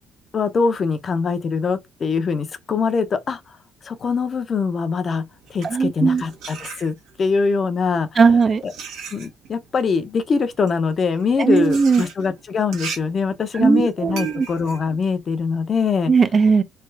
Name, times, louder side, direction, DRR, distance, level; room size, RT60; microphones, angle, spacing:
voice 1, 0.3-3.4 3.8-5.2 5.5-8.2 8.6-8.7 9.1-16.1, left 5 dB, 40° left, 0.6 m, -23 dB
sound 1, 5.3-7.3 8.1-16.0, right 5 dB, 85° right, 1.1 m, -38 dB
voice 2, 5.6-6.2 8.2-8.6 11.4-12.0 13.5-14.5 16.1-16.6, right 5 dB, 35° right, 0.4 m, -17 dB
3.3 x 2.3 x 3.3 m
cardioid pair, 110°, 0 cm